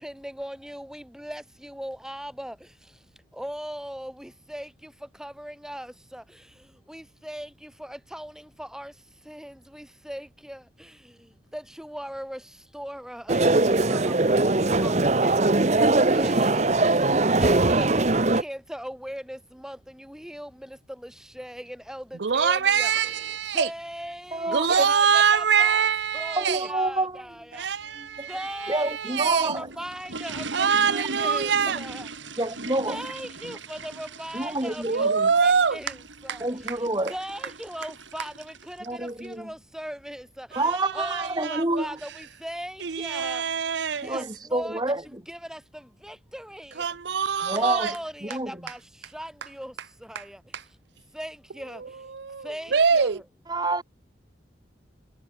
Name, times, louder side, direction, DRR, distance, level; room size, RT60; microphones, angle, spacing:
voice 1, 0.0-3.0 3.3-25.9 26.1-32.1 32.8-43.4 44.0-46.9 47.5-50.4 51.1-52.1 52.4-53.2, equal, 5° right, 3.8 m, -39 dB
sound 1, 13.3-18.4, right 2 dB, 40° right, 1.1 m, -21 dB
voice 2, 22.2-23.7 24.5-26.7 27.5-29.5 30.5-31.8 34.9-35.8 36.3-36.4 40.5-41.9 42.8-44.2 46.8-47.9 50.1-50.2 50.5-50.6 51.7-53.2, right 6 dB, 65° right, 0.6 m, -24 dB
voice 3, 24.3-24.9 26.4-27.2 28.0-28.3 28.7-29.7 32.4-33.0 34.3-35.3 36.4-37.1 38.8-39.5 40.5-42.0 44.0-45.2 47.4-47.9 48.2-48.6 53.5-53.8, right 2 dB, 20° right, 2.5 m, -28 dB
sound 2, 29.0-39.3, right 3 dB, 85° right, 7.6 m, -40 dB
head